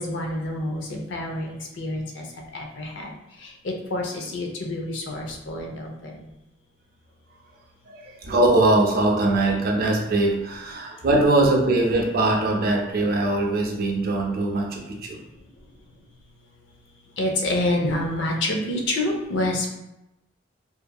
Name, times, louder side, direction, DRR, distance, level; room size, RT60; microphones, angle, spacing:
voice 1, 0.0-2.2 2.5-3.1 3.6-6.1 17.2-19.7, left 1 dB, 70° left, 1 dB, 0.5 m, -27 dB
voice 2, 7.9-15.2, right 2 dB, 50° right, 0 dB, 0.5 m, -21 dB
2.7 x 2.6 x 2.2 m, 0.92 s
head